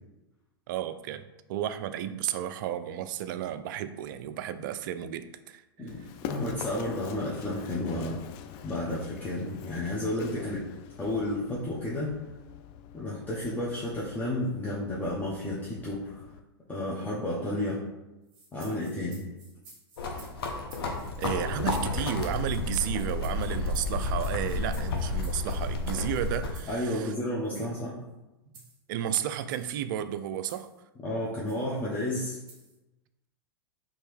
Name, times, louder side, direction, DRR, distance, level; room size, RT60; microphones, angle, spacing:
voice 1, 0.7-1.2 1.5-5.9 10.3-10.4 21.2-27.1 27.5-27.7 28.9-30.7, right 10 dB, 50° right, 11 dB, 0.4 m, -33 dB
voice 2, 5.8-8.2 8.6-10.6 11.0-12.1 12.9-16.2 16.7-17.8 18.5-19.3 26.7-28.0 31.0-32.4, left 1 dB, 15° left, -7 dB, 0.8 m, -32 dB
Run, 5.9-16.4, left 8 dB, 40° left, 0.4 m, -45 dB
sound 1, 18.3-25.6 26.5-26.8 27.4-27.7 28.5-28.8 29.4-29.7 30.5-30.8 31.5-31.7 32.5-32.8, right 3 dB, 30° right, 1.5 m, -54 dB
sound 2, 20.0-26.5, left 3 dB, 70° left, 0.8 m, -31 dB
4.3 x 2.9 x 3.2 m, 1.0 s
hypercardioid pair, 105°, 13 cm